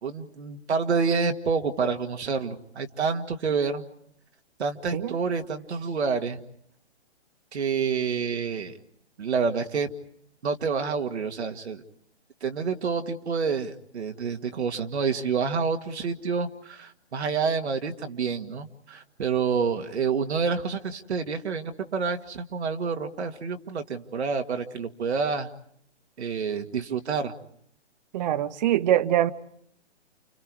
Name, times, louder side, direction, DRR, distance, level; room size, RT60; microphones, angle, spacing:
voice 1, 0.0-3.8 4.6-6.4 7.5-8.7 9.2-9.9 10.4-11.8 12.4-25.5 26.2-27.3, right 5 dB, 70° right, 2.1 m, -28 dB
voice 2, 28.1-29.3, right 12 dB, 40° right, 1.0 m, -23 dB
29.5 x 28.0 x 4.8 m
hypercardioid pair, 140°, 34 cm